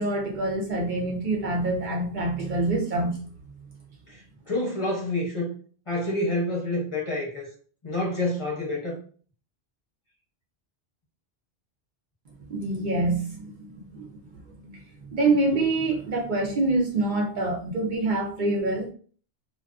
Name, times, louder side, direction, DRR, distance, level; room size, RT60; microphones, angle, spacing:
voice 1, 0.0-3.2 12.5-13.5 13.9-14.1 14.6-14.8 15.1-18.9, right 2 dB, 60° right, 0.6 m, -25 dB
voice 2, 4.5-5.5 5.9-7.5 7.8-9.0, left 1 dB, 35° left, 0.6 m, -28 dB
2.3 x 2.3 x 2.3 m
omnidirectional pair, 1.0 m